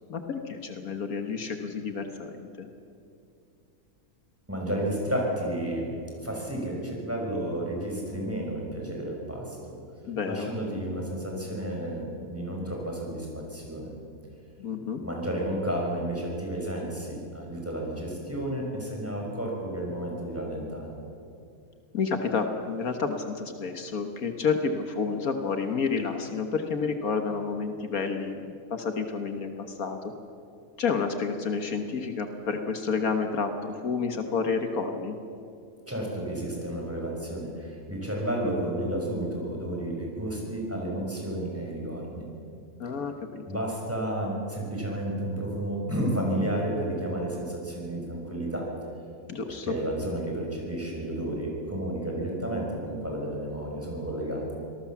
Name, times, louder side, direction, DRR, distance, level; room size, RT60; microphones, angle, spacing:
voice 1, 0.0-2.7 10.0-10.5 14.6-15.0 21.9-28.4 28.7-30.1 30.8-35.2 42.8-43.4 49.3-49.7, left 5 dB, 70° left, 6 dB, 1.8 m, -30 dB
voice 2, 4.5-5.9 6.2-9.7 10.3-13.9 15.0-20.9 35.9-42.3 43.5-48.7 49.5-54.5, right 1 dB, 10° right, -2 dB, 5.7 m, -31 dB
25.5 x 19.0 x 7.3 m, 2.5 s
omnidirectional pair, 1.6 m